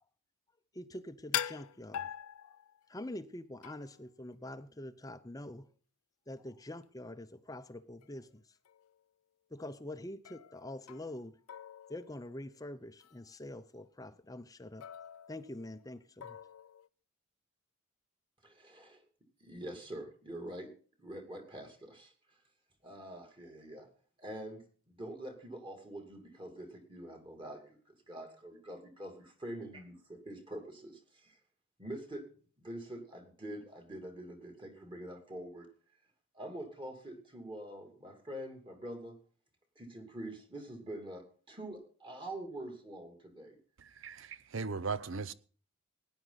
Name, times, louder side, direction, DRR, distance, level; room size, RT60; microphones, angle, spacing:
voice 1, 0.7-2.1 2.4-2.5 2.9-5.7 6.3-8.4 9.5-11.4 11.9-14.9 15.3-16.4, left 1 dB, 15° left, 0.7 m, -45 dB
sound 1, 1.3-2.9 3.6-4.1 8.0-8.1 8.7-9.0 10.2-11.2 11.5-12.6 13.0-13.2 14.8-15.8 16.2-16.9, left 11 dB, 85° left, 0.5 m, -42 dB
voice 2, 18.4-19.0 19.4-20.7 21.0-22.1 22.8-23.9 24.2-27.8 28.1-29.1 29.4-31.4 31.8-32.2 32.6-35.7 36.3-39.2 39.8-43.6, right 1 dB, 25° right, 2.8 m, -45 dB
voice 3, 44.0-45.3, right 4 dB, 60° right, 0.7 m, -37 dB
17.5 x 10.0 x 4.1 m
head